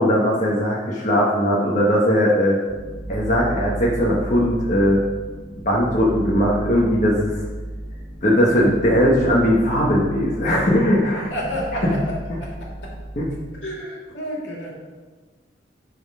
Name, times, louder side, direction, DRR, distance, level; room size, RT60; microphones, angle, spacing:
voice 1, 0.0-2.6 3.1-5.0 5.6-7.3 8.2-11.3 11.8-11.9 13.2-13.3, equal, 45° left, -5 dB, 1.2 m, -19 dB
sound 1, 2.7-13.5, right 1 dB, 5° right, 2.0 m, -34 dB
voice 2, 11.2-12.9 13.6-14.7, equal, 75° left, -3 dB, 2.4 m, -30 dB
10.5 x 4.2 x 5.4 m, 1.4 s
head